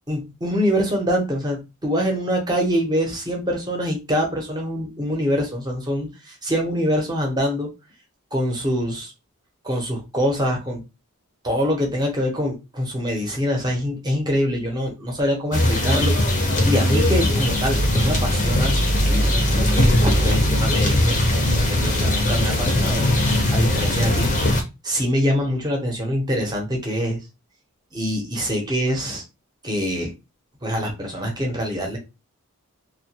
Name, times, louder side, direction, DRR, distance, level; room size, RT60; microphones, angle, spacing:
voice 1, 0.1-7.7 8.3-9.1 9.6-10.8 11.4-21.2 21.5-23.1 23.5-24.4 24.8-27.2 27.9-29.2 29.6-30.1 30.6-32.0, equal, 20° right, 1 dB, 0.7 m, -24 dB
sound 1, 15.5-24.6, left 1 dB, 35° left, 0.6 m, -19 dB
2.2 x 2.2 x 2.8 m, 0.26 s
head